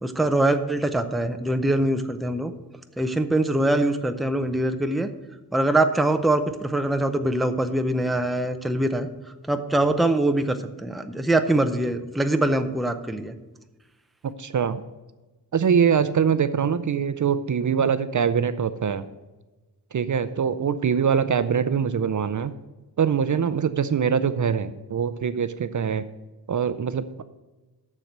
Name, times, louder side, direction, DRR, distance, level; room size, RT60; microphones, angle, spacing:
voice 1, 0.0-2.5 3.0-5.1 5.5-9.1 9.5-13.3, right 1 dB, ahead, 7 dB, 0.5 m, -23 dB
voice 2, 14.2-14.8 15.5-19.1 19.9-22.5 23.0-26.0 26.5-27.2, right 7 dB, 50° right, 12 dB, 0.5 m, -23 dB
7.3 x 6.6 x 8.0 m, 1.1 s
wide cardioid pair, 145°, 39 cm